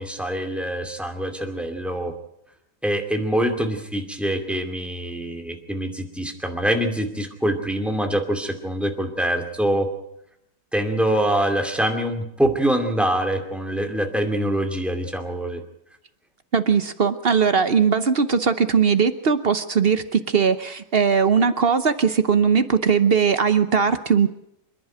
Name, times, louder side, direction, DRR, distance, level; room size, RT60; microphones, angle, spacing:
voice 1, 0.0-2.1 2.8-9.9 10.7-15.6, right 1 dB, ahead, 4 dB, 2.3 m, -24 dB
voice 2, 16.5-24.3, right 6 dB, 50° right, 11 dB, 0.7 m, -19 dB
27.0 x 11.0 x 9.0 m, 0.80 s
omnidirectional pair, 2.1 m